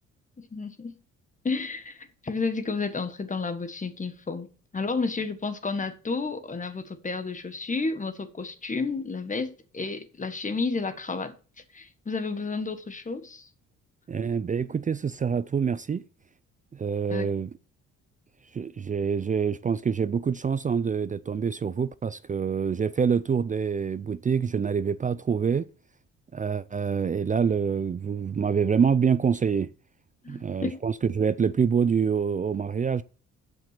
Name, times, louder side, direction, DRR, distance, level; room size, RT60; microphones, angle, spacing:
voice 1, 0.4-0.9 1.4-4.5 4.7-11.3 11.7-13.5 17.1-17.3 30.2-30.8, left 4 dB, 25° left, 1.4 m, -31 dB
voice 2, 14.1-16.0 16.7-17.5 18.5-25.7 26.3-29.7 30.3-33.0, right 6 dB, 25° right, 0.4 m, -26 dB
7.9 x 5.8 x 6.7 m
cardioid pair, 90°, 30 cm